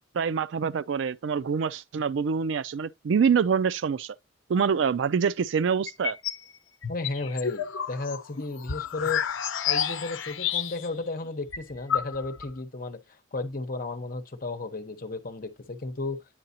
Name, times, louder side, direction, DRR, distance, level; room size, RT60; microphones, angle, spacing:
voice 1, 0.1-4.2 4.5-6.2, right 6 dB, 70° right, 0.4 m, -25 dB
sound 1, 5.9-6.4 6.8-11.0 11.3-11.4 11.5-12.5, left 8 dB, 90° left, 0.8 m, -30 dB
voice 2, 6.9-9.2 9.7-13.0 13.3-16.2, left 3 dB, 50° left, 1.0 m, -33 dB
9.0 x 4.7 x 2.8 m
head